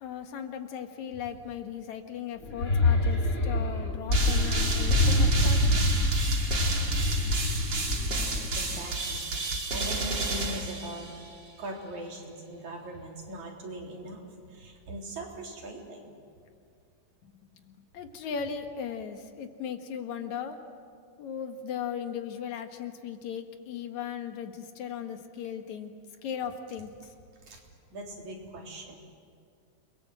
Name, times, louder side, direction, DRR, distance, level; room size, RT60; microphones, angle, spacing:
voice 1, 0.0-5.8 17.9-20.6 21.2-25.9 26.2-26.9, left 8 dB, 75° left, 6 dB, 2.8 m, -37 dB
sound 1, 2.4-8.8, left 1 dB, 30° left, 2.2 m, -25 dB
sound 2, 4.1-11.4, right 3 dB, 40° right, 2.9 m, -32 dB
voice 2, 8.5-9.2 9.7-11.1 11.6-16.1 27.4-27.6 27.9-29.0, right 1 dB, 75° right, -1 dB, 5.0 m, -40 dB
29.5 x 22.0 x 7.7 m, 2.3 s
omnidirectional pair, 3.3 m